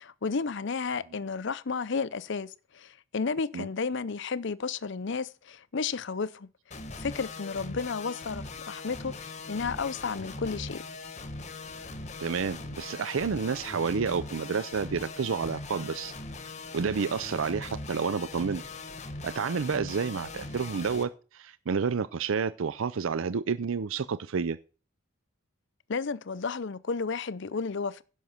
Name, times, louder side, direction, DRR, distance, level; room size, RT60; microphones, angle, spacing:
voice 1, 0.0-6.5 7.0-10.8 25.9-28.0, left 5 dB, 55° left, 0.6 m, -32 dB
sound 1, 6.7-21.0, left 3 dB, 35° left, 1.1 m, -41 dB
voice 2, 12.2-16.1 16.7-18.6 19.2-24.6, right 5 dB, 65° right, 0.5 m, -30 dB
10.5 x 6.4 x 5.8 m
head